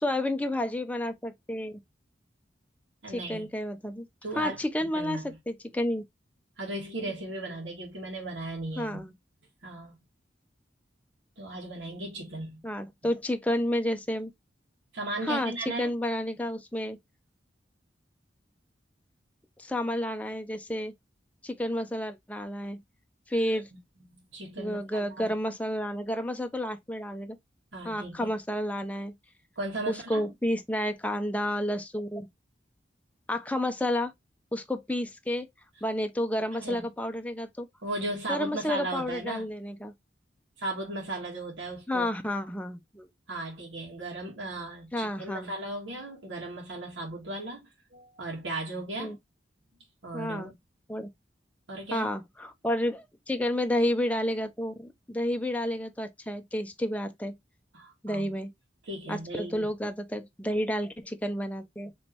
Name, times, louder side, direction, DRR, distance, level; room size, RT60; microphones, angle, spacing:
voice 1, 0.0-1.8 3.1-4.1 4.4-5.2 5.5-6.0 8.8-9.1 12.6-14.3 15.2-15.5 15.8-17.0 19.6-20.9 21.4-22.8 23.3-23.7 24.6-27.4 27.8-29.1 29.9-32.3 33.3-34.1 34.5-35.5 35.8-37.7 38.3-39.9 41.9-43.1 44.9-45.5 49.0-49.2 50.1-50.5 50.9-51.1 51.9-57.3 58.0-58.5 59.1-61.9, left 1 dB, 10° left, 0.5 m, -30 dB
voice 2, 3.0-3.5 4.2-5.4 6.6-9.0 9.6-10.0 11.4-12.7 14.9-15.9 23.3-23.6 24.1-25.3 27.7-28.3 29.5-30.3 36.6-36.9 37.8-39.5 40.6-42.1 43.3-49.2 50.0-50.5 51.7-52.0 57.7-58.3 58.9-59.7, right 2 dB, 85° right, 1.6 m, -36 dB
4.9 x 3.1 x 2.9 m
head